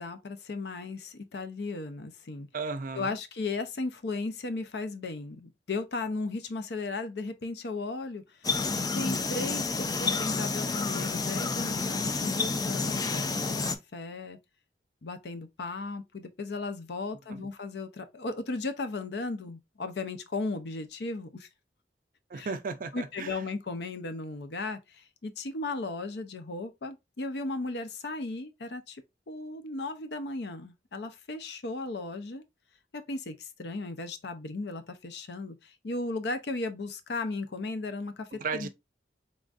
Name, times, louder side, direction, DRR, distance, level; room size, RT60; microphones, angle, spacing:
voice 1, 0.0-2.5 2.9-8.5 8.9-14.4 15.0-21.5 22.3-22.5 22.9-32.4 32.9-38.3 38.5-38.7, left 3 dB, 65° left, 0.6 m, -36 dB
voice 2, 2.5-3.2 17.3-17.5 22.3-23.4 38.4-38.7, right 4 dB, 50° right, 0.5 m, -35 dB
sound 1, 8.4-13.8, left 4 dB, 20° left, 0.4 m, -29 dB
3.8 x 3.5 x 2.5 m
head